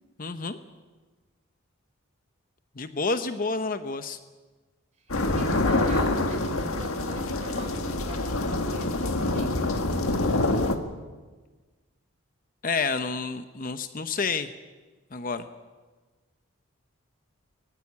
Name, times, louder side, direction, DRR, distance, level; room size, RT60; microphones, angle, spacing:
voice 1, 0.2-0.6 2.8-4.2 12.6-14.5 15.1-15.5, left 4 dB, 40° left, 10 dB, 0.8 m, -29 dB
voice 2, 5.0-9.7, right 2 dB, 30° right, 4 dB, 3.7 m, -41 dB
sound 1, 5.1-10.8, left 2 dB, 75° left, 1.7 m, -26 dB
20.0 x 15.5 x 9.7 m, 1.3 s
head